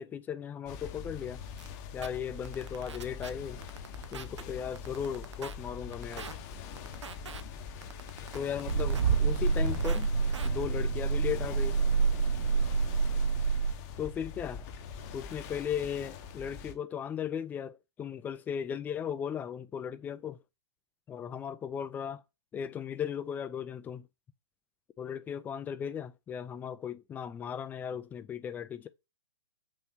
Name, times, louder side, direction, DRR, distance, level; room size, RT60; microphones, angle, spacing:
voice 1, 0.0-1.4 1.9-3.6 4.1-6.3 8.3-10.1 10.4-11.8 14.0-14.6 15.1-20.4 21.1-22.2 22.5-24.1 25.0-28.9, left 8 dB, 10° left, 0.3 m, -36 dB
sound 1, 0.7-16.8, left 7 dB, 40° left, 0.8 m, -43 dB
sound 2, 1.6-1.7 2.0-2.1 2.4-3.3 3.6-4.4 4.8-5.5 5.9-6.3 6.8-7.4 7.8-9.0 9.4-10.0 10.3-10.5, right 6 dB, 85° right, 0.8 m, -43 dB
sound 3, 8.7-13.7, right 5 dB, 65° right, 1.9 m, -27 dB
5.6 x 3.0 x 2.7 m
hypercardioid pair, 135°, 15 cm